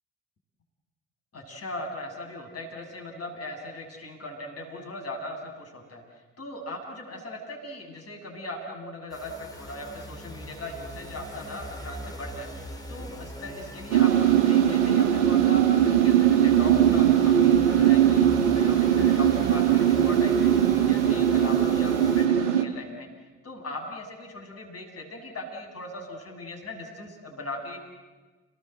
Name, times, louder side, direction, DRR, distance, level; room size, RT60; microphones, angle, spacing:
voice 1, 1.3-18.3 18.5-23.1 23.4-27.8, left 1 dB, 40° left, 1 dB, 7.2 m, -39 dB
sound 1, 9.1-22.3, equal, 10° left, 6.9 m, -39 dB
sound 2, 13.9-22.6, right 10 dB, 70° right, 1.6 m, -20 dB
30.0 x 20.0 x 8.0 m, 1.3 s
figure-of-eight pair, 45°, 36 cm